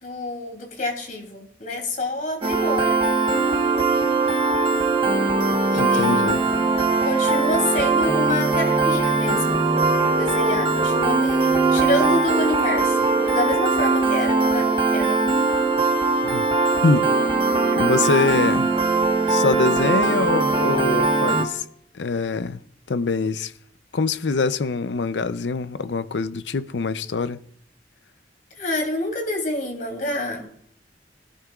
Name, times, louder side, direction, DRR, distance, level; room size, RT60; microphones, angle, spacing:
voice 1, 0.0-3.0 5.7-6.2 7.0-9.6 10.1-15.2 28.5-30.5, left 1 dB, 45° left, 2.9 m, -27 dB
Piano, 2.4-21.5, right 3 dB, 30° right, 1.3 m, -20 dB
voice 2, 5.7-6.4 16.2-16.5 16.8-17.1 17.8-18.7 19.3-21.7 21.9-22.6 22.9-23.5 23.9-27.4, left 4 dB, 85° left, 0.6 m, -24 dB
20.5 x 11.5 x 2.4 m
head